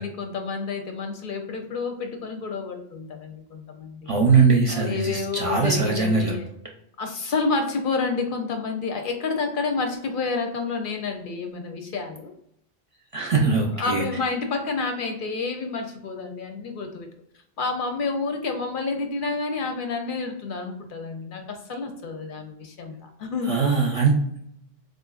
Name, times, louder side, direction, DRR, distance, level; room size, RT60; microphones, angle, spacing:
voice 1, 0.0-4.1 4.7-6.5 7.0-12.3 13.3-17.1 17.6-23.8, left 4 dB, 65° left, 4 dB, 0.7 m, -29 dB
voice 2, 4.1-6.3 13.1-14.0 23.5-24.4, right 4 dB, 40° right, -1 dB, 0.5 m, -21 dB
4.0 x 2.4 x 2.4 m, 0.75 s
omnidirectional pair, 1.0 m